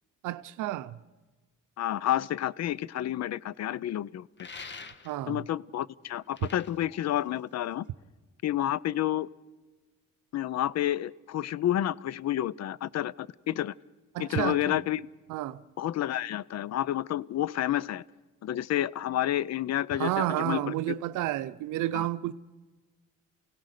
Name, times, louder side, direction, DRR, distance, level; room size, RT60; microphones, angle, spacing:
voice 1, 0.2-1.0 5.0-5.4 14.1-14.8 15.3-15.6 19.9-22.3, right 14 dB, 90° right, 0.6 m, -31 dB
voice 2, 1.8-4.5 5.3-7.9 8.4-9.3 10.3-13.7 14.2-15.0 15.8-18.0 18.4-20.7 21.9-22.1, left 12 dB, 60° left, 0.6 m, -30 dB
sound 1, 4.4-5.4 6.1-7.9, left 4 dB, 35° left, 1.4 m, -46 dB
28.0 x 17.0 x 6.6 m
cardioid pair, 90°, 30 cm